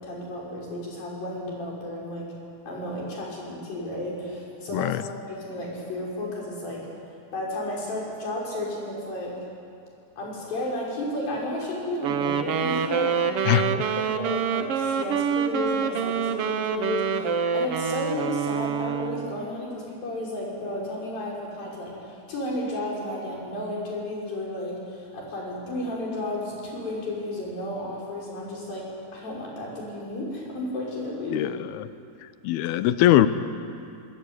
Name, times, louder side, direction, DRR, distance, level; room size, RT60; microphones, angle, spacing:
voice 1, 0.0-2.3 2.6-6.9 7.3-9.4 10.2-13.7 14.0-28.8 29.1-31.5, left 1 dB, 65° left, -4 dB, 8.2 m, -33 dB
Wind instrument woodwind instrument, 12.0-19.5, right 7 dB, 85° right, 1.2 m, -26 dB
voice 2, 31.3-31.9 32.4-33.3, left 13 dB, 85° left, 12 dB, 2.8 m, -21 dB
23.5 x 23.0 x 9.7 m, 2.5 s
omnidirectional pair, 4.4 m